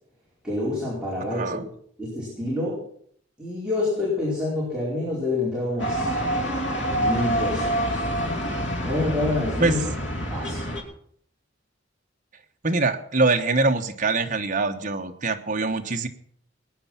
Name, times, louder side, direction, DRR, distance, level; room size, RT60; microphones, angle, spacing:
voice 1, 0.4-1.6 2.0-2.8 3.4-6.1 7.0-8.0 8.8-9.8 10.3-10.6, left 2 dB, 5° right, -7 dB, 4.6 m, -27 dB
voice 2, 1.3-1.7 9.6-9.8 12.6-16.1, right 3 dB, 40° right, 5 dB, 1.2 m, -23 dB
sound 1, 5.8-10.8, equal, 65° left, 3.0 m, -26 dB
19.5 x 9.4 x 5.9 m, 0.63 s
head